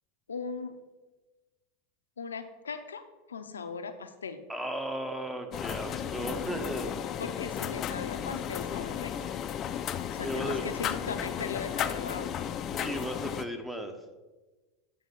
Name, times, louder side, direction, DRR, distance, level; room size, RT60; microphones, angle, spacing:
voice 1, 0.3-0.8 2.2-3.0 3.3-4.4 7.2-9.3 10.1-12.3, left 5 dB, 90° left, 9 dB, 0.5 m, -38 dB
voice 2, 4.5-6.9 10.2-10.7 12.7-13.9, right 1 dB, 10° right, 6 dB, 0.9 m, -35 dB
sound 1, 5.5-13.4, left 9 dB, 40° left, 0.4 m, -34 dB
7.8 x 5.3 x 3.8 m, 1.2 s
hypercardioid pair, 95°, 0 cm